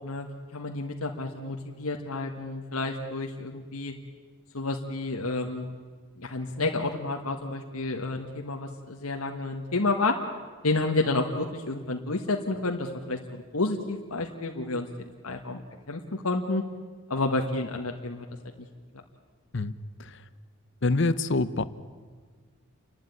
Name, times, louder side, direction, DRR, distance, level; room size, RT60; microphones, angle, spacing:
voice 1, 0.0-3.9 4.5-5.7 6.2-10.2 10.6-14.9 15.2-15.6 15.9-16.6 17.1-18.2, left 2 dB, 85° left, 2 dB, 1.6 m, -30 dB
voice 2, 20.8-21.6, left 3 dB, 55° left, 15 dB, 0.8 m, -25 dB
29.5 x 12.0 x 9.9 m, 1.5 s
head